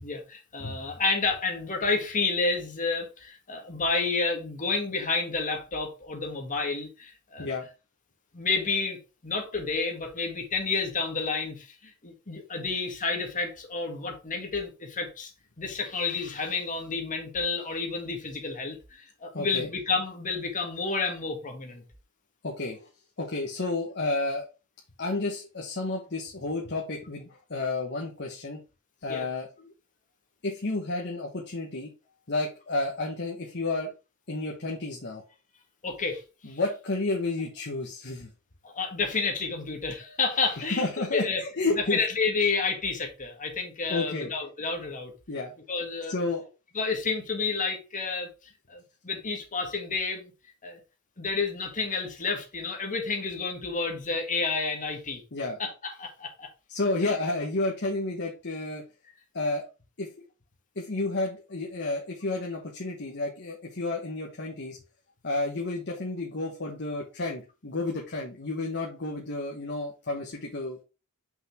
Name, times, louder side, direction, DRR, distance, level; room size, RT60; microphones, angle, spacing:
voice 1, 0.0-7.5 8.3-9.0 9.2-15.3 15.6-21.8 29.1-29.3 35.8-36.2 36.5-36.6 38.6-41.4 41.8-45.1 45.7-46.1 46.8-48.3 48.7-50.3 50.6-50.8 51.2-55.2 55.6-56.5 57.0-57.1, left 4 dB, 40° left, 1.8 m, -30 dB
voice 2, 19.3-19.7 22.4-22.9 23.2-24.4 25.0-28.6 29.0-29.7 30.4-31.9 32.3-33.9 34.3-35.2 36.4-38.3 40.7-42.0 43.9-44.3 45.3-45.5 46.1-46.4 55.3-55.6 56.7-58.8 59.3-59.7 60.0-60.1 60.7-64.8 65.2-70.8, left 2 dB, 55° left, 1.3 m, -31 dB
6.0 x 5.4 x 3.4 m
head